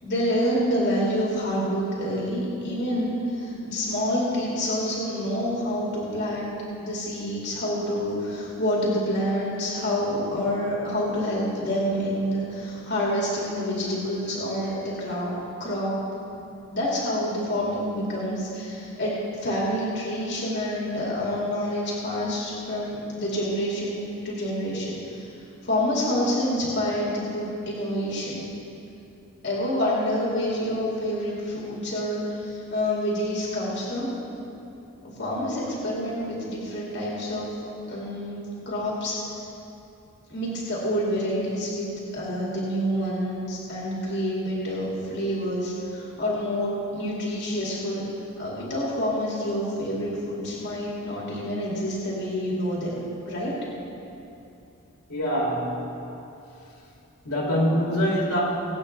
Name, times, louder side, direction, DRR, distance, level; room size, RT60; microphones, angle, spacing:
voice 1, 0.0-6.5 6.8-15.3 15.6-16.1 16.7-25.3 25.6-28.5 29.4-34.2 35.0-37.5 37.9-38.4 38.7-39.1 40.3-41.9 42.1-48.1 48.4-53.0 53.3-53.6, equal, 50° left, -6 dB, 2.4 m, -27 dB
voice 2, 55.1-55.9 57.2-58.4, equal, 85° left, -5 dB, 3.3 m, -24 dB
22.0 x 8.6 x 3.3 m, 2.8 s
head